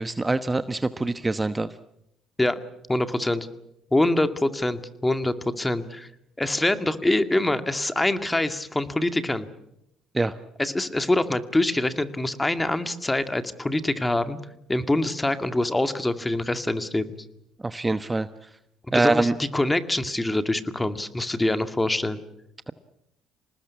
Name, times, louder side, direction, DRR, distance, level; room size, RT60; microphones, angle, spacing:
voice 1, 0.0-1.7 10.1-10.3 17.6-18.3 18.9-19.3, right 2 dB, 20° right, 12 dB, 1.1 m, -24 dB
voice 2, 2.9-3.5 3.9-6.1 6.4-9.5 10.6-14.4 14.7-17.0 18.9-22.2, left 1 dB, 15° left, 10 dB, 2.1 m, -25 dB
26.5 x 19.5 x 8.4 m, 0.80 s
supercardioid pair, 70°, 0 cm